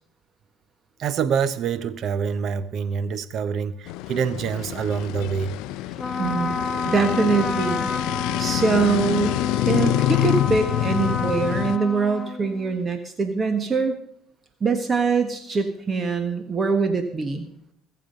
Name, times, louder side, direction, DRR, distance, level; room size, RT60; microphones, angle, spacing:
voice 1, 1.0-5.6, right 6 dB, 55° right, 0.9 m, -26 dB
sound 1, 3.9-11.8, left 16 dB, 75° left, 0.5 m, -26 dB
Trumpet, 5.9-12.8, left 4 dB, 20° left, 1.3 m, -30 dB
voice 2, 6.2-6.6 6.8-7.9 8.4-9.4 9.6-13.9 14.6-17.5, right 4 dB, 30° right, 1.5 m, -23 dB
21.0 x 7.5 x 5.4 m
supercardioid pair, 90°, 0 cm